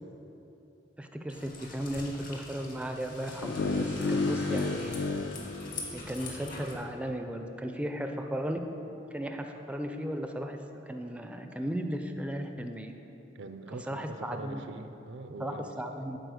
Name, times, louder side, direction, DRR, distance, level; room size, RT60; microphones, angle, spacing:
voice 1, 1.0-5.2 5.9-8.6 9.1-12.9 13.7-14.6 15.4-16.2, equal, 5° right, 5 dB, 0.3 m, -36 dB
sound 1, 1.3-6.8, left 3 dB, 50° left, 1.3 m, -45 dB
sound 2, 2.9-6.6, left 2 dB, 90° left, 1.2 m, -47 dB
sound 3, 3.4-6.5, left 3 dB, 65° left, 0.4 m, -32 dB
voice 2, 4.2-4.6 13.3-16.0, right 3 dB, 75° right, 8 dB, 0.5 m, -43 dB
8.0 x 4.4 x 6.3 m, 3.0 s
head